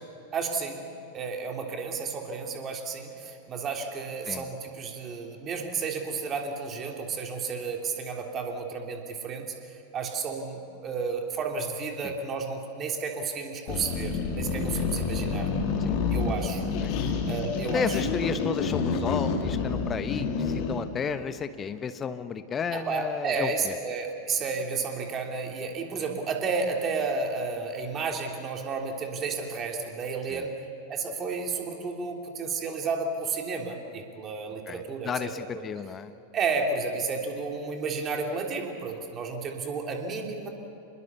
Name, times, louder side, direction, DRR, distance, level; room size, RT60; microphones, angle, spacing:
voice 1, 0.3-0.8 1.1-15.5 16.1-16.6 16.9-18.0 22.7-30.6 30.9-35.6 36.3-40.5, right 4 dB, 25° right, 2 dB, 3.2 m, -32 dB
sound 1, 13.7-20.9, left 4 dB, 45° left, 2.7 m, -28 dB
voice 2, 17.7-23.7 30.3-30.4 34.7-36.1, left 6 dB, 20° left, 11 dB, 1.2 m, -33 dB
27.5 x 21.5 x 7.0 m, 3.0 s
figure-of-eight pair, 90°, 0 cm